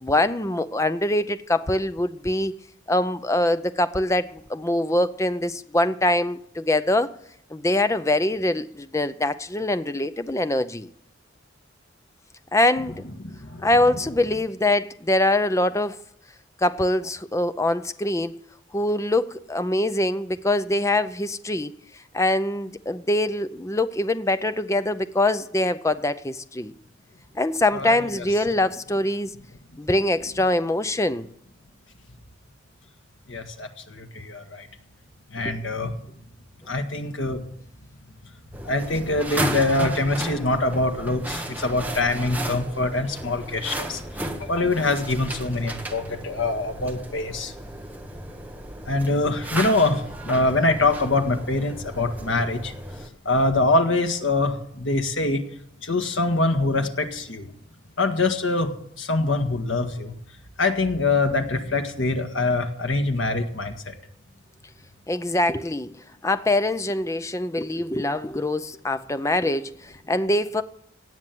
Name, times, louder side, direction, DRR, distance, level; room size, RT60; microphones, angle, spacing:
voice 1, 0.0-2.5 2.9-7.1 7.5-10.9 12.5-13.1 13.6-16.0 16.6-18.3 18.7-21.7 22.1-26.7 27.3-29.3 29.8-31.3 65.1-65.9 66.2-70.6, left 1 dB, 15° left, 0.6 m, -23 dB
voice 2, 13.2-13.7 27.7-28.2 33.3-34.7 35.3-35.9 36.7-37.4 38.6-47.5 48.8-52.7 53.2-55.4 55.8-57.5 58.0-60.1 60.6-63.9, left 2 dB, 75° left, 1.7 m, -24 dB
sound 1, 38.5-53.1, right 1 dB, 10° right, 1.3 m, -34 dB
17.5 x 7.5 x 9.2 m
head